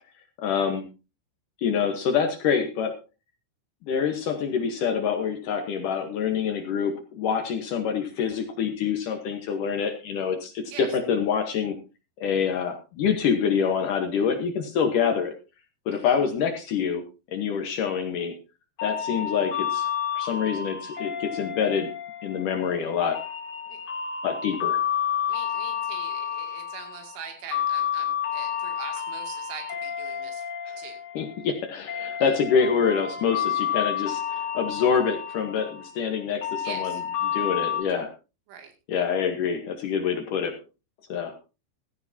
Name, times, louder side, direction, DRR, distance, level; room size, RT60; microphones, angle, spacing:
voice 1, 0.4-0.9 1.6-2.9 3.9-11.8 12.2-15.3 15.9-18.3 18.8-19.9 20.2-21.9 22.2-23.2 24.2-24.8 31.2-36.9 37.3-38.1 38.9-40.5 41.1-41.4, left 7 dB, 75° left, 5 dB, 1.9 m, -26 dB
sound 1, 18.8-37.8, left 8 dB, 45° left, 3.1 m, -30 dB
voice 2, 25.3-30.5 30.8-31.0 32.2-32.4 36.5-37.0 38.5-38.7, right 7 dB, 85° right, 5 dB, 4.9 m, -42 dB
15.5 x 14.5 x 2.8 m, 0.30 s
omnidirectional pair, 5.5 m